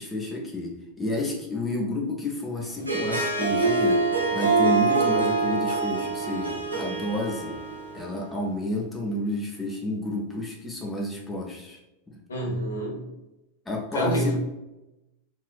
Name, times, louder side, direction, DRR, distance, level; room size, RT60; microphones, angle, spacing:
voice 1, 0.0-7.6 7.9-11.8 12.1-12.2 13.7-14.3, left 1 dB, 10° left, -3 dB, 0.6 m, -30 dB
Harp, 2.7-8.2, right 3 dB, 80° right, 0.5 m, -25 dB
voice 2, 12.3-13.0 13.9-14.3, right 1 dB, 70° left, -2 dB, 0.9 m, -27 dB
3.2 x 2.8 x 2.4 m, 0.97 s
figure-of-eight pair, 90°, 0 cm